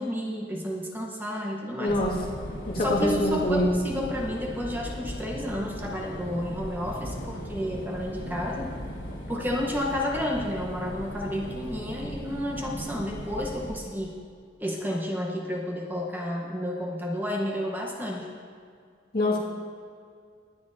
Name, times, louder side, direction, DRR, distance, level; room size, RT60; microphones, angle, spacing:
voice 1, 0.0-2.0 2.8-8.7 9.3-14.2 14.6-18.3, left 1 dB, 10° right, -1 dB, 0.9 m, -31 dB
voice 2, 1.7-2.2 2.6-3.7 19.1-19.4, left 1 dB, 55° left, -4 dB, 2.0 m, -25 dB
sound 1, 1.9-13.8, equal, 90° left, 3.3 m, -38 dB
19.5 x 9.4 x 2.7 m, 2.2 s
head